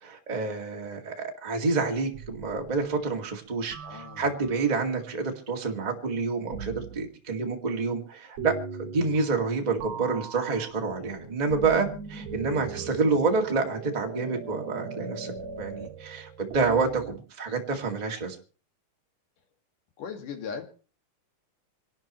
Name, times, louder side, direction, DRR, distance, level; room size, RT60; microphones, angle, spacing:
voice 1, 0.0-15.3 15.6-18.3, right 4 dB, 15° right, 2 dB, 1.7 m, -28 dB
sound 1, 2.1-2.9 3.7-4.8 6.5-7.1 8.4-9.5 9.8-17.2, right 6 dB, 65° right, 2.6 m, -40 dB
voice 2, 3.8-4.3 12.7-13.0 20.0-20.6, left 6 dB, 85° left, 5 dB, 3.6 m, -38 dB
26.0 x 12.0 x 3.1 m, 0.36 s
omnidirectional pair, 3.6 m